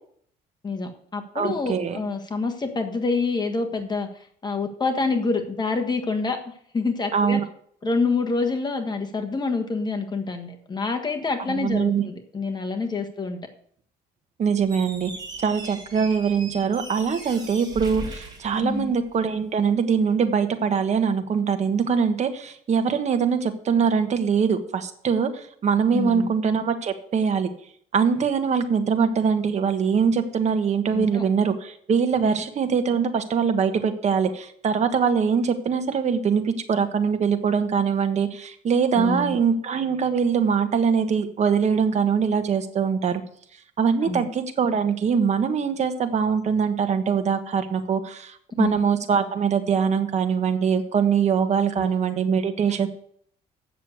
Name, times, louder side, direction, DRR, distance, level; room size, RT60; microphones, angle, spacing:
voice 1, 0.6-4.1 4.4-7.4 7.8-13.4 18.6-18.9 25.9-26.3 30.9-31.2 39.0-39.3 44.0-44.2 48.6-48.7 51.7-51.9, left 3 dB, 25° left, 4 dB, 1.4 m, -27 dB
voice 2, 1.3-2.0 7.1-7.4 11.5-12.0 14.4-15.1 15.4-27.5 27.9-43.2 43.8-52.9, right 6 dB, 40° right, 7 dB, 1.3 m, -23 dB
Squeak, 14.6-19.3, right 3 dB, 25° right, 3.2 m, -39 dB
7.9 x 6.7 x 8.2 m, 0.63 s
cardioid pair, 110°, 17 cm